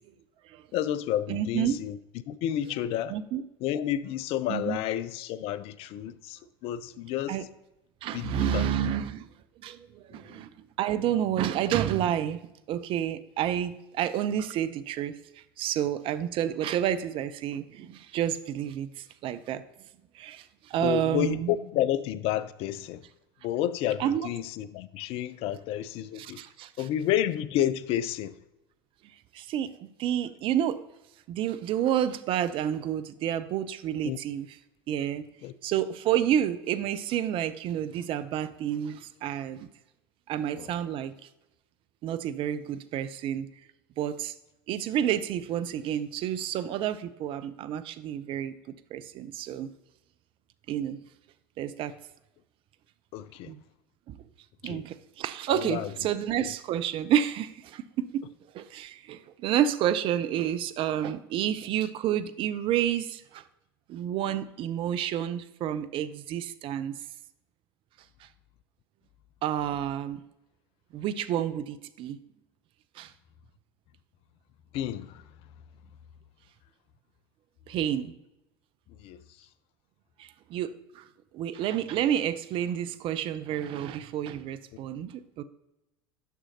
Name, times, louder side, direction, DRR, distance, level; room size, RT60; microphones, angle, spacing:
voice 1, 0.7-2.0 2.3-3.2 3.6-7.4 8.1-8.7 10.1-10.4 20.8-23.0 23.4-26.4 26.8-28.3 34.1-34.2 35.4-35.5 40.6-40.7 53.1-53.5 54.6-54.8 55.5-56.1 74.7-75.2 79.0-79.2, left 11 dB, 50° left, 0.4 m, -30 dB
voice 2, 1.3-1.8 3.1-3.4 4.5-4.8 6.9-7.0 7.3-7.4 8.0-9.3 9.6-12.4 12.7-19.6 20.1-21.6 24.0-24.3 26.2-26.9 29.3-30.8 31.3-34.5 34.9-35.3 35.6-39.7 40.3-41.1 42.0-43.5 44.0-44.3 44.7-48.5 48.9-49.7 50.7-51.0 51.6-51.9 53.5-53.6 54.1-54.2 54.6-58.2 58.5-63.4 63.9-67.0 69.4-70.2 70.9-72.2 73.0-73.1 77.7-78.1 80.2-81.0 81.3-85.4, right 10 dB, 45° right, 0.5 m, -30 dB
9.2 x 6.2 x 2.8 m
hypercardioid pair, 75°, 13 cm